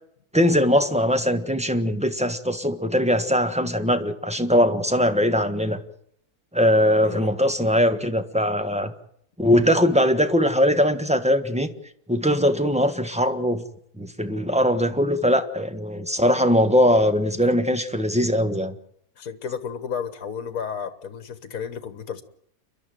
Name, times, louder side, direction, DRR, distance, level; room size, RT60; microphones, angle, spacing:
voice 1, 0.3-5.8 6.5-8.9 9.4-11.7 12.1-13.6 14.0-18.7, equal, 5° right, 8 dB, 1.4 m, -21 dB
voice 2, 7.0-7.4 19.2-22.2, left 7 dB, 65° left, 12 dB, 1.9 m, -32 dB
29.5 x 12.0 x 9.2 m, 0.69 s
omnidirectional pair, 1.6 m